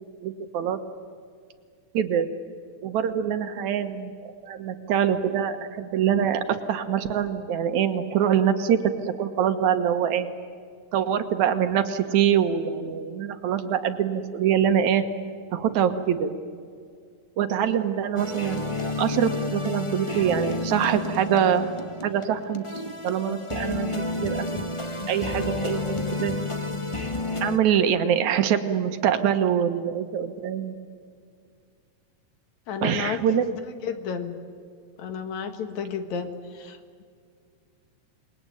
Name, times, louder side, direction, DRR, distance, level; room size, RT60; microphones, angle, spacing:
voice 1, 0.2-0.8 1.9-2.3 2.8-10.3 10.9-15.0 15.5-16.4 17.4-21.7 22.0-22.6 23.0-24.6 25.1-26.4 27.4-30.8 32.8-33.4, right 9 dB, 80° right, 8 dB, 2.7 m, -24 dB
sound 1, 18.2-27.6, left 2 dB, 35° left, 0.5 m, -31 dB
voice 2, 32.7-34.4 35.0-37.0, left 6 dB, 75° left, 8 dB, 3.0 m, -32 dB
28.0 x 21.0 x 9.2 m, 2.2 s
omnidirectional pair, 3.3 m